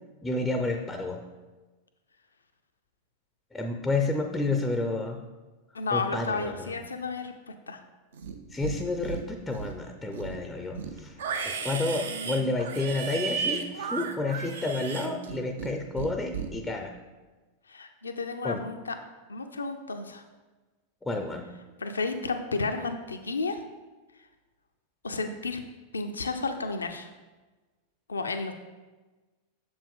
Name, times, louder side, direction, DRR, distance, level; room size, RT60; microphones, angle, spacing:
voice 1, 0.2-1.2 3.5-5.2 5.9-6.7 8.5-11.1 11.4-16.9 18.4-18.6 21.0-21.5, left 2 dB, 5° left, 5 dB, 0.5 m, -30 dB
voice 2, 5.7-7.8 12.0-12.8 17.7-18.9 19.3-20.2 21.8-23.6 25.0-25.6 25.9-27.1 28.1-28.6, left 3 dB, 75° left, 7 dB, 0.4 m, -32 dB
Livestock farm animals working animals, 8.1-8.8 9.0-9.8 10.1-15.7 16.0-16.5, right 6 dB, 65° right, 0.6 m, -34 dB
6.8 x 5.2 x 3.6 m, 1.2 s
figure-of-eight pair, 90°, 0 cm